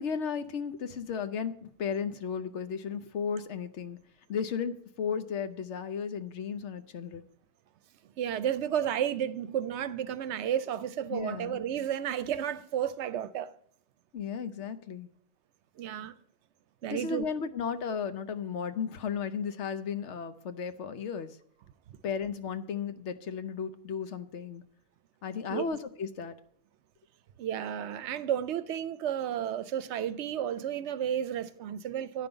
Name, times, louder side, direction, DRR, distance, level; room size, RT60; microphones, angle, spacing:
voice 1, 0.0-4.0 4.3-7.2 11.1-11.6 14.1-15.1 16.9-21.4 22.0-24.6 25.2-26.3, left 6 dB, 75° left, 1.1 m, -34 dB
voice 2, 8.2-13.5 15.8-16.1 16.8-17.3 25.5-25.7 27.4-32.3, right 10 dB, 75° right, 0.8 m, -32 dB
9.8 x 5.4 x 7.9 m
omnidirectional pair, 1.2 m